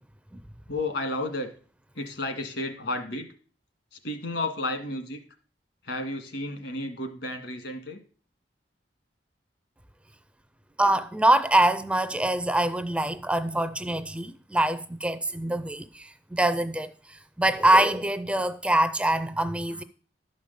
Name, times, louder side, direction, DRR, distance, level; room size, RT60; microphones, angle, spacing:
voice 1, 0.7-1.5 2.0-3.3 3.9-5.2 5.8-8.0 13.5-13.6 19.7-19.8, left 2 dB, 70° left, 1.8 m, -32 dB
voice 2, 10.8-19.8, right 1 dB, 5° right, 0.4 m, -24 dB
12.0 x 5.2 x 6.6 m
head